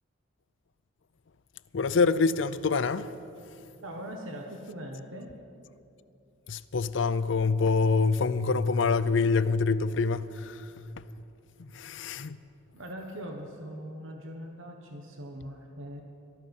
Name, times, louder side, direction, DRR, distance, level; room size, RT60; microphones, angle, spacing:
voice 1, 1.7-3.1 6.5-10.5 11.7-12.4, left 4 dB, 65° left, 0.5 m, -25 dB
voice 2, 3.8-5.3 12.7-16.0, equal, 80° right, 1.3 m, -41 dB
19.5 x 13.0 x 5.5 m
head